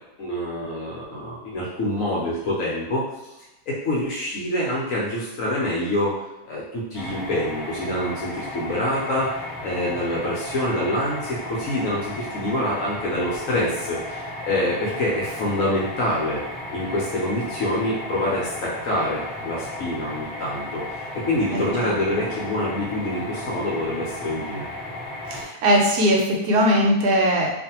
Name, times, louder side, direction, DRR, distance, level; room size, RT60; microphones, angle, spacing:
voice 1, 0.2-3.0 3.7-6.1 6.5-16.4 16.7-24.6, left 1 dB, 65° left, -5 dB, 0.9 m, -26 dB
sound 1, 6.9-25.4, left 1 dB, 15° left, 1.1 m, -34 dB
voice 2, 21.5-21.9 25.3-27.5, equal, 75° right, -1 dB, 1.1 m, -20 dB
2.5 x 2.5 x 2.8 m, 0.97 s
omnidirectional pair, 1.8 m